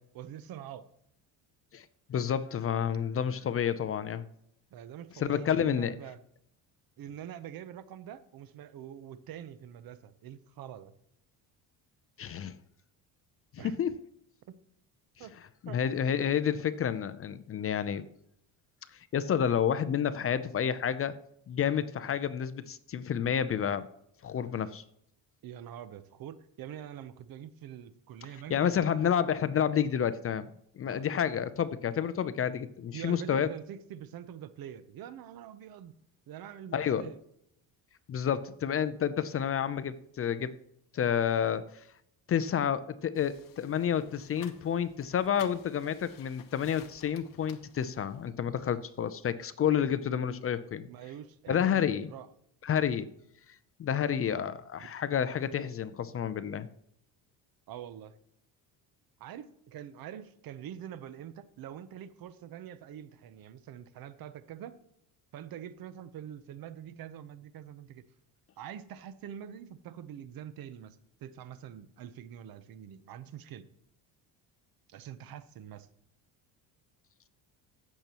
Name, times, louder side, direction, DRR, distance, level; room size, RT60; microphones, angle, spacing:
voice 1, 0.1-0.9 4.7-6.2 7.0-10.9 13.6-13.8 14.5-14.6 15.2-15.4 15.7-16.0 25.4-28.7 30.8-31.0 32.9-35.9 36.3-37.2 50.9-52.3 57.7-58.2 59.2-64.8 65.3-68.0 68.6-73.7 74.9-75.9, right 10 dB, 55° right, 14 dB, 0.9 m, -45 dB
voice 2, 1.7-4.2 5.2-5.9 12.2-12.5 13.5-14.0 15.6-18.0 19.1-21.1 21.5-23.9 24.2-24.8 28.5-30.5 30.8-33.5 36.7-37.1 38.1-40.5 40.9-41.7 42.3-50.9 51.5-52.1 52.6-53.1 53.8-56.7, left 8 dB, 35° left, 14 dB, 0.5 m, -29 dB
sound 1, 43.2-48.3, left 9 dB, 50° left, 1.2 m, -54 dB
16.0 x 6.8 x 3.0 m, 0.73 s
cardioid pair, 120°, 42 cm